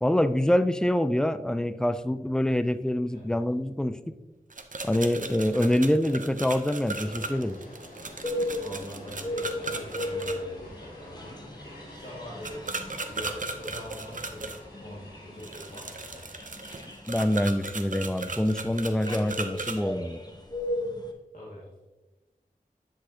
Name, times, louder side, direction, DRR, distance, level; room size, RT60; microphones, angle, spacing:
voice 1, 0.0-4.2 4.8-7.6 17.1-20.2, left 1 dB, 5° left, 12 dB, 0.4 m, -25 dB
sound 1, 4.5-10.3 12.4-14.6 15.4-19.8, right 3 dB, 60° right, 0.7 m, -36 dB
sound 2, 6.8-17.0, equal, 85° left, 2.4 m, -48 dB
sound 3, 8.2-21.1, left 1 dB, 25° left, 1.0 m, -37 dB
voice 2, 8.6-11.4 11.9-12.6 13.1-14.5 14.8-16.2 21.3-21.7, left 1 dB, 65° left, -8 dB, 2.1 m, -43 dB
10.0 x 6.3 x 2.8 m, 1.2 s
wide cardioid pair, 65°, 15 cm